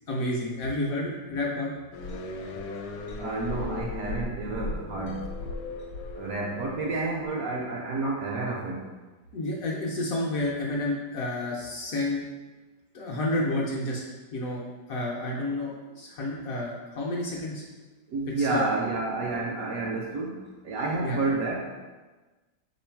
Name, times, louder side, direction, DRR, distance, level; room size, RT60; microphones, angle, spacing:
voice 1, 0.1-1.7 9.3-12.2 12.9-14.0 14.3-14.6 14.9-17.6 18.4-18.7 21.0-21.2, left 1 dB, 65° left, -3 dB, 0.9 m, -30 dB
sound 1, 1.9-7.3, left 3 dB, 80° left, 1.2 m, -36 dB
voice 2, 3.2-5.3 6.1-8.8 18.1-21.8, right 3 dB, 70° right, -1 dB, 0.8 m, -30 dB
3.8 x 3.0 x 4.4 m, 1.2 s
omnidirectional pair, 1.9 m